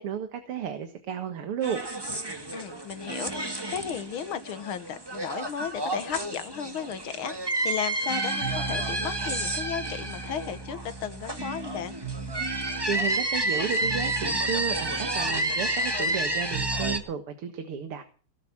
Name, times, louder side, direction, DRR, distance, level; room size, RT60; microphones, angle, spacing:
voice 1, 0.0-1.8 12.9-18.0, right 7 dB, 90° right, 2.5 m, -33 dB
sound 1, 1.6-17.0, right 1 dB, 10° right, 1.7 m, -30 dB
voice 2, 2.5-12.0, left 8 dB, 70° left, 2.1 m, -35 dB
18.5 x 8.5 x 7.2 m
omnidirectional pair, 2.4 m